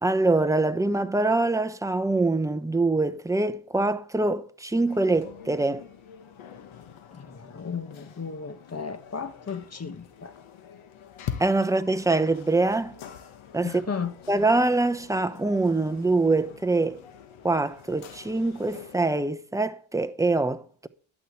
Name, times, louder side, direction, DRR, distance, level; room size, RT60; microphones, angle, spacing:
voice 1, 0.0-5.9 11.4-12.9 13.5-13.8 14.3-17.0 17.4-20.9, right 2 dB, 5° right, 0.9 m, -24 dB
sound 1, 4.9-19.0, left 8 dB, 75° left, 2.0 m, -44 dB
voice 2, 7.1-10.3 13.6-14.1, left 6 dB, 30° left, 1.6 m, -34 dB
12.0 x 6.0 x 8.8 m
cardioid pair, 95°, 48 cm